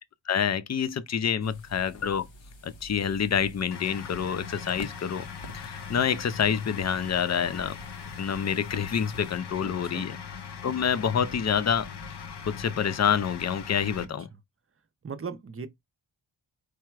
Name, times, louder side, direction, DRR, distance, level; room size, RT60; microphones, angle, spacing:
voice 1, 0.3-2.3 2.6-5.3 5.5-7.8 8.2-10.2 10.6-11.9 12.4-14.3, left 7 dB, 40° left, 0.4 m, -27 dB
sound 1, 1.4-9.4, left 1 dB, 80° left, 1.1 m, -48 dB
sound 2, 3.7-14.0, left 6 dB, 60° left, 0.8 m, -40 dB
voice 2, 9.6-10.1 14.0-14.1 15.0-15.7, right 5 dB, 30° right, 0.6 m, -38 dB
4.8 x 2.2 x 4.5 m
wide cardioid pair, 95°, 46 cm